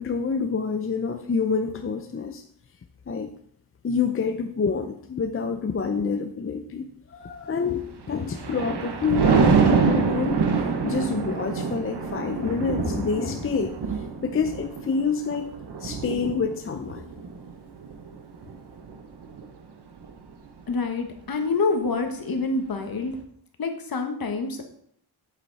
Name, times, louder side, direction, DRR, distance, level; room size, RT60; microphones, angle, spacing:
voice 1, 0.0-2.4 3.1-3.3 3.8-10.4 10.8-13.8 14.2-15.5 15.8-17.0, left 5 dB, 35° left, 7 dB, 0.6 m, -27 dB
Thunder, 8.0-19.5 20.0-20.3, right 5 dB, 80° right, 1.3 m, -26 dB
voice 2, 20.7-23.1 23.6-24.7, left 3 dB, 60° left, 5 dB, 1.5 m, -27 dB
8.3 x 8.2 x 4.1 m, 0.65 s
wide cardioid pair, 115°, 39 cm